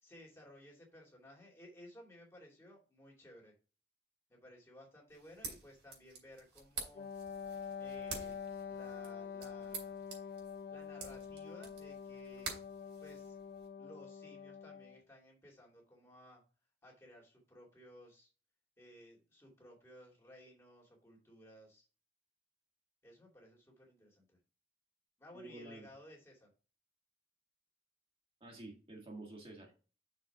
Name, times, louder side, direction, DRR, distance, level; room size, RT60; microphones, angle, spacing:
voice 1, 0.0-3.5 4.3-7.1 7.8-8.4 8.7-10.0 10.7-12.5 13.0-13.4 13.8-16.4 16.8-18.3 18.8-21.9 23.0-24.4 25.2-26.5, left 1 dB, 15° left, -2 dB, 2.4 m, -57 dB
sound 1, 5.1-13.7, right 4 dB, 85° right, 3.4 m, -49 dB
Wind instrument woodwind instrument, 6.9-15.0, left 6 dB, 55° left, 0.5 m, -46 dB
voice 2, 25.3-25.9 28.4-29.8, right 2 dB, 30° right, -1 dB, 1.6 m, -50 dB
6.3 x 4.5 x 4.7 m, 0.35 s
head